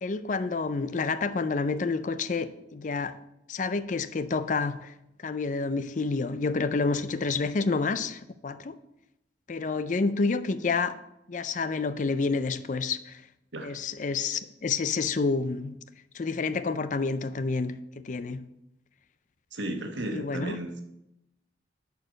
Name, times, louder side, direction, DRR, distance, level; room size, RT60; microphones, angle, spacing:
voice 1, 0.0-3.2 3.5-4.9 5.2-8.8 9.5-11.0 11.3-13.2 13.6-15.8 16.1-18.5 20.1-20.6, left 4 dB, 45° left, 0.4 m, -29 dB
voice 2, 19.5-20.8, right 1 dB, 80° right, 1.3 m, -34 dB
11.0 x 4.6 x 6.3 m
head